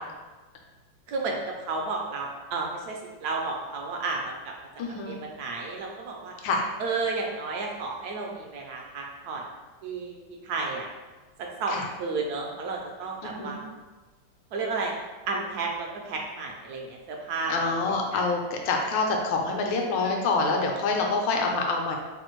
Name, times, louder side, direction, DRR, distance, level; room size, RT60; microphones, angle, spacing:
voice 1, 1.7-4.5 4.9-6.3 6.8-9.4 9.8-10.2 10.4-10.9 11.6-13.6 14.5-14.9 15.3-17.7 18.1-18.2, right 3 dB, 75° right, 0 dB, 0.9 m, -32 dB
voice 2, 4.8-5.2 6.4-6.6 11.7-11.9 13.2-13.6 17.5-22.0, left 3 dB, 80° left, 1 dB, 1.3 m, -26 dB
3.3 x 2.5 x 4.4 m, 1.2 s
omnidirectional pair, 2.1 m